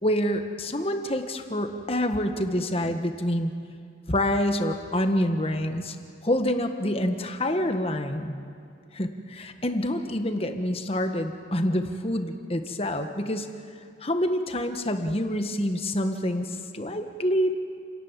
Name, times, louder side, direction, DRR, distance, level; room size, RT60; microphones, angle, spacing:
voice 1, 0.0-3.5 4.1-6.0 6.2-8.3 8.9-13.5 14.0-17.5, left 1 dB, 30° left, 6 dB, 1.5 m, -27 dB
30.0 x 18.0 x 7.5 m, 2.4 s
head